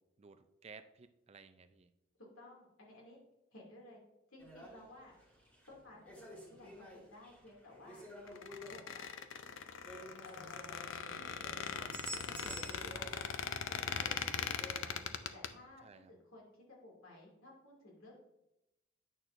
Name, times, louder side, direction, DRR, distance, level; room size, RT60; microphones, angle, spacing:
voice 1, 0.2-1.9 13.9-14.4 15.8-16.1, right 5 dB, 30° right, 10 dB, 0.4 m, -57 dB
voice 2, 2.2-3.2 3.5-4.0 4.3-5.2 5.7-8.0 8.7-9.0 10.2-10.9 11.4-13.2 13.7-15.1 15.3-15.8 16.1-18.1, left 2 dB, 85° left, -2 dB, 2.5 m, -56 dB
sound 1, 4.4-13.4 13.7-14.9, right 1 dB, 10° left, 1.7 m, -51 dB
Squeak, 8.3-15.5, left 7 dB, 65° left, 0.4 m, -40 dB
8.9 x 6.2 x 2.6 m, 0.88 s
head